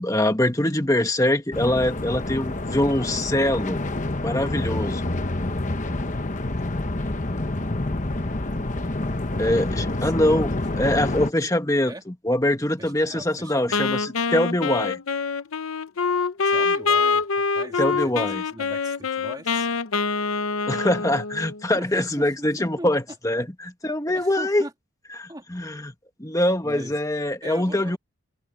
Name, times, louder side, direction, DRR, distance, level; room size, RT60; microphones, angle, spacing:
voice 1, 0.0-3.8 4.2-5.1 9.4-10.5 10.8-11.9 12.2-15.0 17.8-18.4 20.7-24.6 25.2-25.9 26.2-28.0, left 1 dB, 15° left, 1.7 m, -23 dB
sound 1, 1.5-11.3, left 2 dB, 35° left, 1.1 m, -27 dB
voice 2, 9.6-10.4 11.8-12.0 12.8-13.8 16.4-19.7 21.7-23.4 24.1-24.7 25.3-25.5 26.6-27.0 27.4-28.0, right 1 dB, 20° right, 2.6 m, -40 dB
Wind instrument woodwind instrument, 13.7-21.6, left 4 dB, 80° left, 0.8 m, -25 dB
open air
head